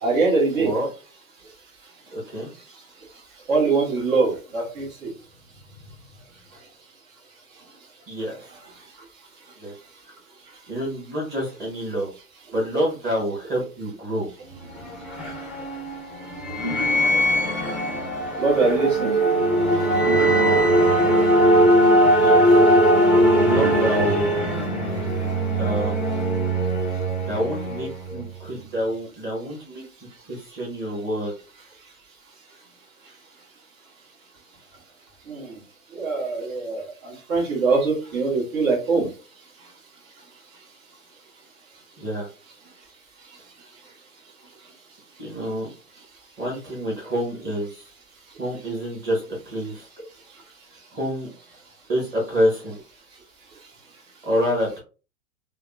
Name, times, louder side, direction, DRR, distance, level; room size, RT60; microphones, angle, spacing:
voice 1, 0.0-0.7 3.5-5.1 18.4-19.1 35.3-35.6 35.9-39.1, right 4 dB, 65° right, -2 dB, 1.5 m, -23 dB
voice 2, 0.5-0.9 2.1-2.5 8.1-8.6 9.6-9.7 10.7-12.1 12.5-14.3 22.2-22.6 23.4-24.3 25.6-26.1 27.2-29.8 30.3-31.3 42.0-42.3 45.2-45.7 46.4-47.9 48.4-49.9 50.9-51.3 51.9-52.8 54.2-54.8, equal, 25° right, -3 dB, 1.0 m, -27 dB
sound 1, 14.5-28.2, right 1 dB, 5° right, 0.5 m, -20 dB
3.4 x 2.2 x 2.3 m, 0.35 s
hypercardioid pair, 115°, 43 cm